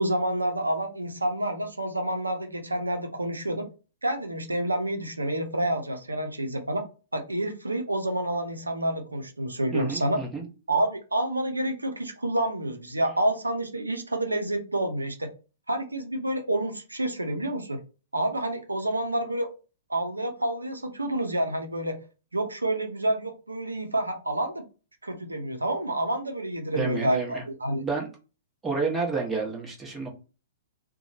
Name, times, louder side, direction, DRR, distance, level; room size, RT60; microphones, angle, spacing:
voice 1, 0.0-3.7 4.0-6.8 7.1-10.2 10.7-15.3 15.7-17.8 18.1-19.5 19.9-22.0 22.3-24.6 25.0-27.8, right 1 dB, 90° right, 5 dB, 0.5 m, -28 dB
voice 2, 9.7-10.4 26.7-27.4 27.8-28.1 28.6-30.1, right 4 dB, 15° right, -1 dB, 1.0 m, -30 dB
2.8 x 2.1 x 2.6 m, 0.34 s
figure-of-eight pair, 115°, 0 cm